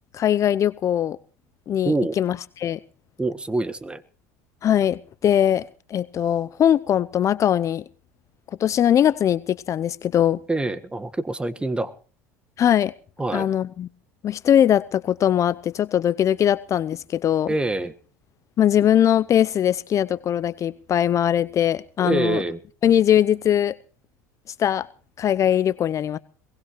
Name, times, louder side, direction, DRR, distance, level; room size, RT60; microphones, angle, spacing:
voice 1, 0.1-1.2 1.7-2.8 4.6-7.8 8.6-10.4 12.6-12.9 13.3-13.9 14.2-17.5 18.6-22.4 22.8-23.8 24.6-24.9 25.2-26.2, left 10 dB, 40° left, 17 dB, 0.7 m, -21 dB
voice 2, 1.8-2.2 3.2-4.0 10.5-11.9 13.2-13.5 17.5-17.9 22.0-22.6, right 2 dB, 10° right, 14 dB, 1.5 m, -25 dB
22.5 x 19.5 x 3.1 m, 0.40 s
hypercardioid pair, 90°, 8 cm